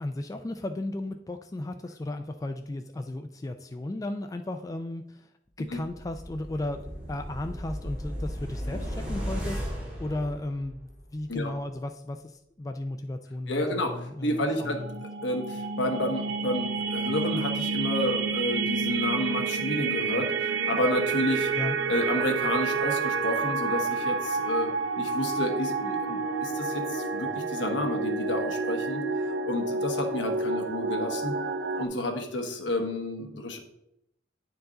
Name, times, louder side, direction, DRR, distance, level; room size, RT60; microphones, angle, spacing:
voice 1, 0.0-5.3 5.6-6.8 7.1-9.6 10.0-15.0 21.6-21.8, left 1 dB, 20° left, 7 dB, 0.3 m, -35 dB
sound 1, 5.9-11.0 11.3-11.4, equal, 5° right, 2.9 m, -35 dB
voice 2, 13.5-21.5 21.9-31.4 31.8-33.6, left 1 dB, 75° left, 3 dB, 1.3 m, -30 dB
sound 2, 14.3-31.9, right 4 dB, 75° right, 0.6 m, -29 dB
9.6 x 4.6 x 3.8 m, 0.81 s
head